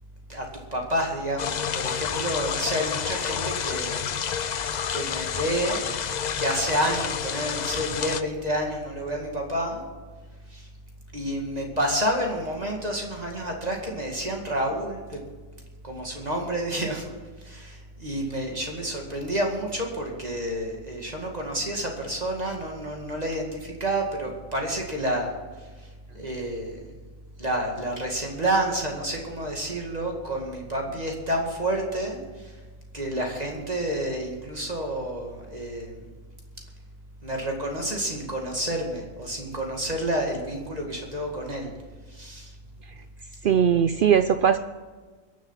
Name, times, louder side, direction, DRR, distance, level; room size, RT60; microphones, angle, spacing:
voice 1, 0.7-4.0 4.9-5.9 6.4-9.8 10.5-10.7 11.1-15.2 15.8-17.1 17.4-25.3 26.1-26.9 27.4-32.5 32.9-36.0 37.2-41.7 42.1-42.5, right 1 dB, 30° right, 0 dB, 2.2 m, -29 dB
sound 1, 1.4-8.2, left 7 dB, 85° left, 0.3 m, -29 dB
voice 2, 43.4-44.6, right 8 dB, 85° right, 11 dB, 0.4 m, -19 dB
21.5 x 7.5 x 5.8 m, 1.4 s
omnidirectional pair, 1.5 m